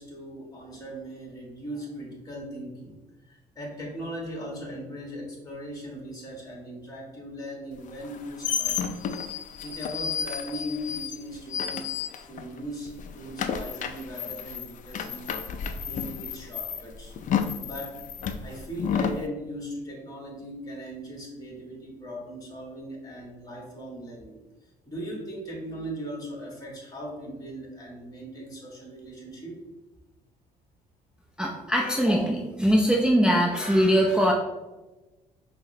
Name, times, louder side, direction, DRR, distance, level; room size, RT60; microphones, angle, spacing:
voice 1, 0.0-3.0 3.3-9.0 9.6-11.9 12.2-15.3 15.9-17.1 17.6-17.9 18.4-24.4 24.9-29.5, equal, 20° left, -2 dB, 1.4 m, -39 dB
sound 1, 8.0-12.6 12.9-19.2, left 7 dB, 50° left, 0.4 m, -31 dB
voice 2, 31.4-34.3, equal, 5° right, -2 dB, 0.5 m, -22 dB
5.5 x 2.1 x 2.7 m, 1.1 s
supercardioid pair, 80°, 17 cm